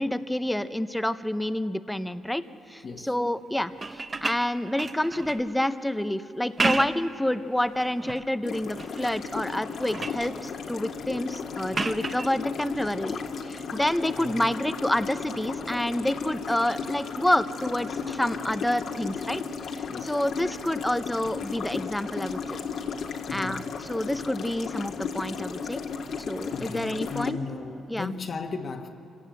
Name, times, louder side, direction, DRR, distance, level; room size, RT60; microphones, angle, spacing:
voice 1, 0.0-19.4 19.7-22.6 23.3-25.8 26.3-27.4 27.9-28.1, left 1 dB, 5° left, 12 dB, 0.7 m, -28 dB
voice 2, 2.8-3.1 14.2-14.5 19.9-20.2 23.3-23.6 26.5-28.9, left 4 dB, 45° left, 3 dB, 1.5 m, -36 dB
sound 1, 3.7-5.5 6.4-7.1 7.6-8.3 8.8-9.2 9.6-10.3 11.7-12.3 14.0-14.2, right 3 dB, 30° right, 0.9 m, -32 dB
sound 2, 8.4-27.3, left 5 dB, 70° left, 1.7 m, -35 dB
25.5 x 17.5 x 7.7 m, 2.9 s
cardioid pair, 90°, 0 cm